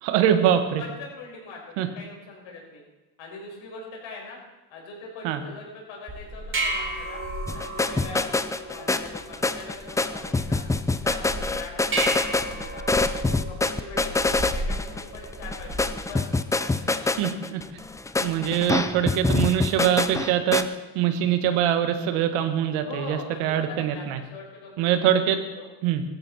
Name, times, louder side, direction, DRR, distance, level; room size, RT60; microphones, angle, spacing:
voice 1, 0.0-0.8 1.8-1.9 5.2-5.4 17.0-17.6 18.2-20.7 20.9-24.2 24.8-25.4 25.8-26.0, right 10 dB, 75° right, 8 dB, 1.7 m, -23 dB
voice 2, 0.8-2.8 3.2-4.4 4.7-7.2 7.5-10.6 10.9-13.1 13.4-16.4 22.7-25.2 25.6-25.7, left 3 dB, 65° left, -1 dB, 5.7 m, -42 dB
sound 1, 6.1-16.0, right 1 dB, 25° right, 3.1 m, -33 dB
sound 2, 7.5-20.6, left 3 dB, 5° left, 0.4 m, -26 dB
16.5 x 14.0 x 4.3 m, 1.1 s
supercardioid pair, 110°, 49 cm